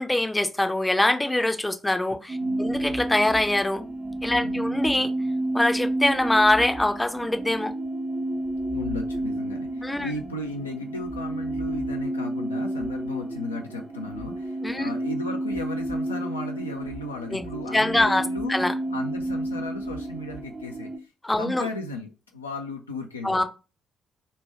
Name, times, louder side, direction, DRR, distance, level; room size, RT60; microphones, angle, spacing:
voice 1, 0.0-3.9 4.2-5.1 5.5-7.7 9.8-10.1 14.6-14.9 17.3-17.5 17.7-18.2 18.5-18.7 21.2-21.7 23.2-23.4, left 1 dB, 10° left, 0.5 m, -23 dB
sound 1, 2.3-21.0, right 1 dB, 35° right, 0.6 m, -30 dB
voice 2, 2.4-3.0 4.3-4.9 8.7-18.5 18.9-21.1 21.4-23.4, left 2 dB, 85° left, 0.3 m, -36 dB
3.2 x 2.2 x 4.2 m
figure-of-eight pair, 40°, 0 cm